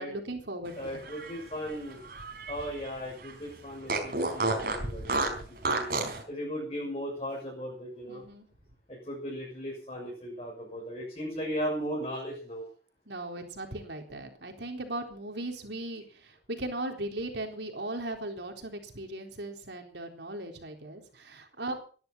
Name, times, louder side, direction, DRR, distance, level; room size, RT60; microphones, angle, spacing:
voice 1, 0.0-0.9 8.1-8.5 13.1-16.0 16.5-21.7, right 1 dB, 75° right, 4 dB, 3.9 m, -38 dB
voice 2, 0.8-2.1 2.5-5.4 5.6-5.9 6.3-8.2 8.9-12.6, equal, 35° left, -2 dB, 6.7 m, -37 dB
Fart, 0.9-2.9 3.2-3.3 3.9-6.2, right 2 dB, 55° right, 4.5 m, -31 dB
19.0 x 12.0 x 5.6 m, 0.41 s
head